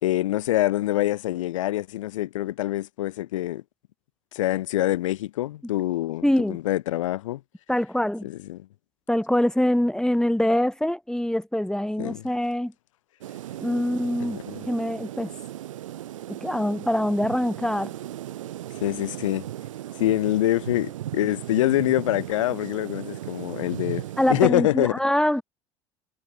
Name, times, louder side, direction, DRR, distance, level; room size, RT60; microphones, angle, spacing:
voice 1, 0.0-3.6 4.3-7.4 8.2-8.7 12.0-12.2 14.5-14.7 18.8-19.4 20.0-24.0 24.3-24.9, left 15 dB, 75° left, 2.4 m, -25 dB
voice 2, 6.2-6.6 7.7-8.3 9.1-12.7 13.6-15.3 16.3-17.9 24.2-25.4, left 1 dB, 5° left, 2.7 m, -24 dB
sound 1, 13.2-24.5, right 13 dB, 75° right, 1.8 m, -37 dB
figure-of-eight pair, 65°, 17 cm